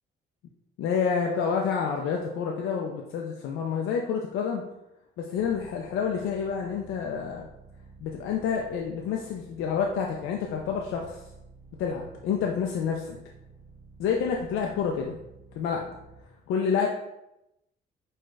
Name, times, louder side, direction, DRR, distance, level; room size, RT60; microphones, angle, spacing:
voice 1, 0.8-4.6 5.2-7.5 8.0-11.2 11.8-13.2 14.0-15.2 15.5-15.9 16.5-16.9, left 6 dB, 85° left, 1 dB, 0.5 m, -28 dB
sound 1, 5.3-16.2, right 4 dB, 25° right, 1.2 m, -52 dB
5.1 x 2.3 x 3.8 m, 0.88 s
cardioid pair, 90°, 20 cm